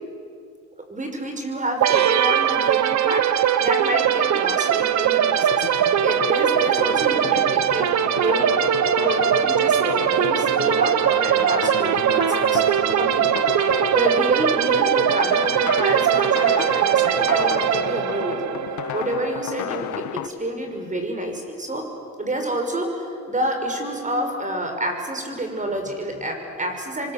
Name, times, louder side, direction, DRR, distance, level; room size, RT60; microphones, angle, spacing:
voice 1, 0.9-3.3 3.6-8.5 9.0-12.6 12.9-18.6 18.9-21.9 22.2-27.1, right 1 dB, 25° right, 4 dB, 6.1 m, -28 dB
sound 1, 1.8-19.4, right 10 dB, 65° right, 1.1 m, -21 dB
sound 2, 5.5-20.3, left 10 dB, 75° left, 1.4 m, -31 dB
27.5 x 24.5 x 7.7 m, 2.3 s
cardioid pair, 90°, 30 cm